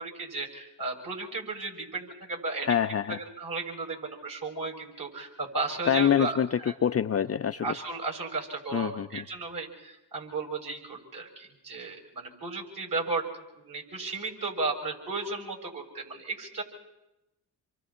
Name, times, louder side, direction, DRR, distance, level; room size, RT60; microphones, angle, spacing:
voice 1, 0.0-2.7 3.1-6.8 7.6-13.2 13.5-16.6, right 3 dB, 45° right, 1 dB, 7.3 m, -34 dB
voice 2, 2.7-3.2 5.9-6.5 6.8-7.7 8.7-9.2, left 8 dB, 35° left, 9 dB, 0.6 m, -25 dB
28.0 x 24.0 x 4.4 m, 0.95 s
supercardioid pair, 55°, 45 cm